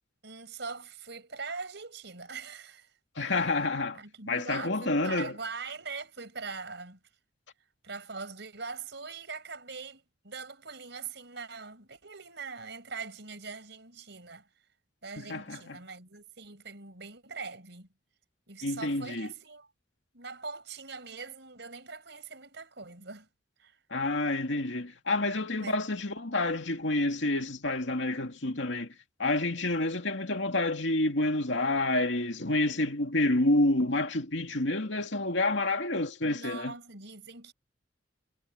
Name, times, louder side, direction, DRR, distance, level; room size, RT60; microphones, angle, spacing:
voice 1, 0.2-3.3 3.9-7.0 7.8-14.5 15.0-17.9 18.5-19.7 20.1-23.3 23.6-23.8 25.6-25.7 36.2-37.5, right 4 dB, 65° right, 6.0 m, -42 dB
voice 2, 3.2-4.0 4.3-5.3 15.2-15.8 18.6-19.3 23.9-28.9 29.2-36.7, left 2 dB, 70° left, 2.6 m, -28 dB
head